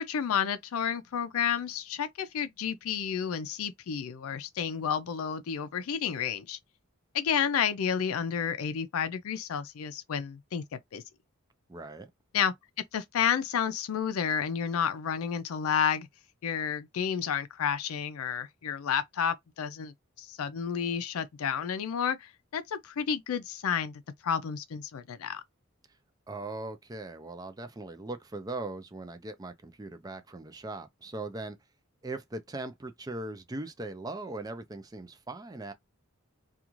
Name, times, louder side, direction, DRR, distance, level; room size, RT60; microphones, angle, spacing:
voice 1, 0.0-6.6 7.1-11.0 12.3-12.5 12.9-16.1 16.4-25.4, left 7 dB, 85° left, 0.4 m, -31 dB
voice 2, 11.7-12.1 26.3-31.6 32.0-35.7, right 2 dB, 20° right, 0.4 m, -39 dB
2.4 x 2.4 x 3.0 m
head